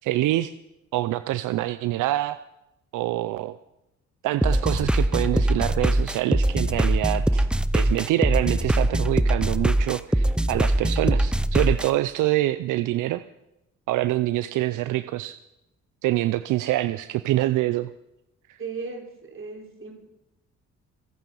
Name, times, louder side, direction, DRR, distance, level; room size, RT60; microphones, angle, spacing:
voice 1, 0.0-0.5 0.9-2.4 2.9-3.6 4.2-7.5 7.7-13.2 13.9-15.4 16.0-17.9 18.5-18.6, right 15 dB, 85° right, 13 dB, 0.6 m, -25 dB
sound 1, 4.4-11.9, right 1 dB, 5° right, 0.6 m, -22 dB
voice 2, 18.6-19.9, right 4 dB, 45° right, 2 dB, 4.2 m, -36 dB
26.0 x 9.2 x 5.6 m, 0.90 s
cardioid pair, 90°, 30 cm